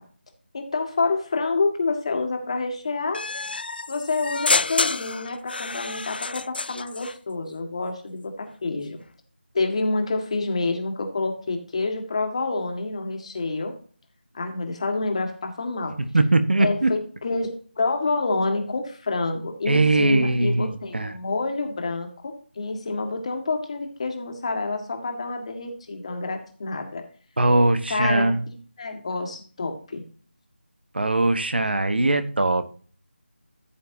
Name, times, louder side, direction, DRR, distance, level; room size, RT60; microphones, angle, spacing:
voice 1, 0.5-3.2 3.9-9.0 9.5-13.7 14.3-15.9 16.6-27.0 27.9-30.0, left 3 dB, 30° left, 4 dB, 2.0 m, -28 dB
sound 1, 3.1-7.2, left 3 dB, 55° left, 0.3 m, -28 dB
voice 2, 16.0-16.9 19.7-21.2 27.4-28.4 30.9-32.6, right 2 dB, 60° right, 10 dB, 1.3 m, -21 dB
14.0 x 7.2 x 2.8 m, 0.42 s
figure-of-eight pair, 170°, 6 cm